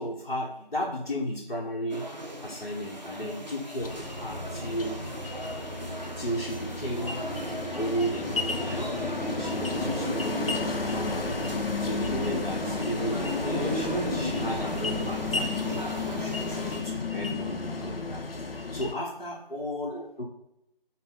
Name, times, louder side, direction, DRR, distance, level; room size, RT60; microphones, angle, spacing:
voice 1, 0.0-2.1 2.4-5.1 6.2-7.3 7.7-9.0 9.4-11.3 11.8-18.2 18.7-20.2, equal, 55° left, -6 dB, 0.9 m, -35 dB
sound 1, 1.9-16.8, equal, 50° right, 0.4 m, -37 dB
sound 2, 3.8-18.9, left 3 dB, 80° left, 0.6 m, -32 dB
5.6 x 2.1 x 3.7 m, 0.83 s
figure-of-eight pair, 180°, 29 cm